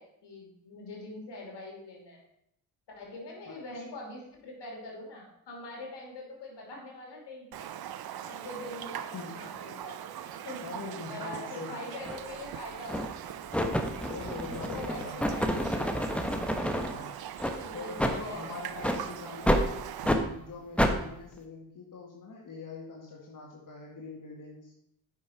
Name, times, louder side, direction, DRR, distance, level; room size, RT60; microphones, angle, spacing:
voice 1, 0.0-2.2 2.9-7.7 8.3-10.7 11.1-16.6 17.5-18.8 19.3-19.9, left 2 dB, 65° left, -1 dB, 2.8 m, -44 dB
voice 2, 3.5-3.8 9.1-9.6 10.6-11.7 14.0-15.2 16.8-17.2 17.7-19.8 20.1-24.7, left 4 dB, 45° left, -2 dB, 1.9 m, -43 dB
Raindrop, 7.5-20.1, right 10 dB, 55° right, 0.7 m, -41 dB
sound 1, 12.1-12.2 12.9-13.2 13.5-16.9 17.4-17.6 18.0-18.2 18.8-19.0 19.5-19.7 20.0-20.2 20.8-21.0, equal, 5° left, 1.2 m, -28 dB
9.3 x 5.6 x 4.5 m, 0.76 s
hypercardioid pair, 40°, 45 cm